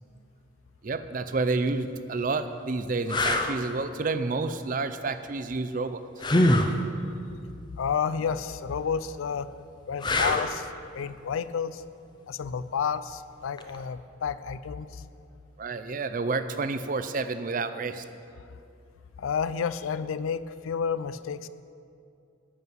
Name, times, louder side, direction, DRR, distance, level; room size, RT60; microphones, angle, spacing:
voice 1, 0.8-6.0 15.6-18.0, right 3 dB, 40° right, 11 dB, 0.5 m, -29 dB
sound 1, 1.5-1.7 2.4-2.5 3.1-3.6 6.2-6.7 10.0-10.6 13.6-13.8, left 1 dB, 20° left, 0.5 m, -23 dB
voice 2, 7.8-9.5 9.9-11.8 12.3-15.0 18.5-18.6 19.2-21.5, left 6 dB, 80° left, 15 dB, 0.4 m, -31 dB
11.0 x 5.6 x 7.6 m, 2.5 s
head